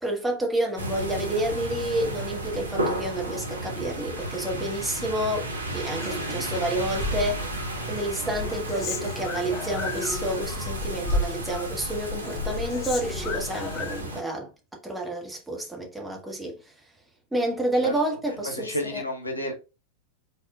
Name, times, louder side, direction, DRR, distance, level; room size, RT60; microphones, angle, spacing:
voice 1, 0.0-5.5 5.7-7.5 7.9-14.5 14.8-16.6 17.3-19.0, right 1 dB, 5° right, 1.5 m, -29 dB
sound 1, 0.8-14.2, right 1 dB, 75° right, 1.0 m, -32 dB
Human voice, 6.0-7.2 7.5-10.7 11.0-11.8 12.0-14.0, left 5 dB, 35° left, 0.9 m, -37 dB
voice 2, 18.4-19.5, left 1 dB, 75° left, 1.7 m, -31 dB
5.2 x 4.1 x 2.4 m
figure-of-eight pair, 90°, 0 cm